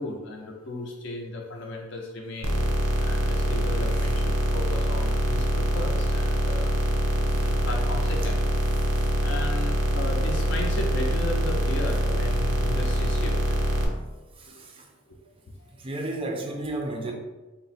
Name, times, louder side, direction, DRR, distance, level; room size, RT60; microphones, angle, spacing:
voice 1, 0.0-2.6 3.0-6.7 7.4-8.4 9.2-13.6 14.5-14.6 15.1-15.2, left 2 dB, 55° left, 0.5 m, -35 dB
sound 1, 2.4-13.9, equal, 85° right, 0.6 m, -24 dB
voice 2, 14.4-14.9 15.8-17.1, right 2 dB, 25° right, 0.4 m, -34 dB
3.7 x 2.0 x 4.1 m
head